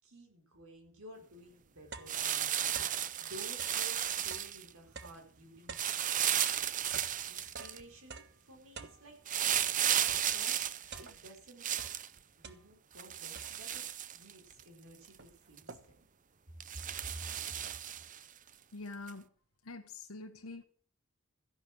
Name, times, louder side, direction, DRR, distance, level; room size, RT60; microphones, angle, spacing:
voice 1, 0.0-7.0 7.2-10.6 11.0-11.7 12.4-13.8 14.1-15.8 16.7-17.6, right 1 dB, 80° right, 2 dB, 5.1 m, -53 dB
sound 1, 1.0-1.1 1.5-3.1 3.5-9.7 10.1-11.4 11.7-13.0 13.4-13.9 14.5-14.6 14.9-16.1, right 4 dB, 55° right, 1.3 m, -51 dB
sound 2, 2.1-4.7 5.7-7.8 9.3-12.1 13.0-14.6 15.0-15.1 15.6-15.7 16.6-18.2 19.1-19.2, right 10 dB, 40° right, 0.7 m, -34 dB
voice 2, 18.7-19.3 19.6-20.6, left 3 dB, 85° left, 4 dB, 1.2 m, -45 dB
14.0 x 11.0 x 7.7 m, 0.43 s
head